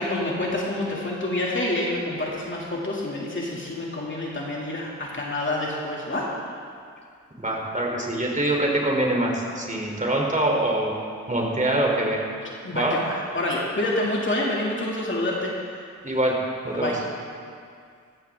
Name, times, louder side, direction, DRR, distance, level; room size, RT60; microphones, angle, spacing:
voice 1, 0.0-6.5 12.6-15.9 16.7-17.0, left 1 dB, 40° left, -4 dB, 2.7 m, -28 dB
voice 2, 7.4-10.9 11.3-12.2 12.7-13.0 16.0-16.4 16.6-16.9, right 1 dB, 25° right, -1 dB, 3.5 m, -24 dB
15.0 x 14.5 x 3.7 m, 2.2 s
cardioid pair, 55°, 29 cm